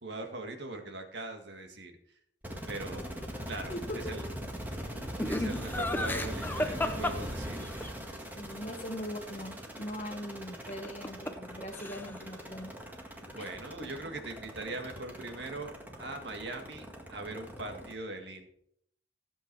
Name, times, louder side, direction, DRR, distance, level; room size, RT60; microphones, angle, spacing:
voice 1, 0.0-1.9 2.7-3.0 3.5-3.7 4.1-4.2 5.2-7.6 13.3-15.7 16.0-18.5, right 2 dB, 60° right, 4 dB, 1.9 m, -41 dB
sound 1, 2.4-17.9, equal, 10° right, 1.7 m, -41 dB
voice 2, 2.9-3.3 3.7-4.3 8.4-12.7 13.4-13.5 13.8-13.9, equal, 35° left, 6 dB, 1.2 m, -41 dB
Laughter, 5.2-7.9 10.7-11.5 11.7-12.3, left 1 dB, 10° left, 0.7 m, -33 dB
15.5 x 8.1 x 4.7 m, 0.71 s
head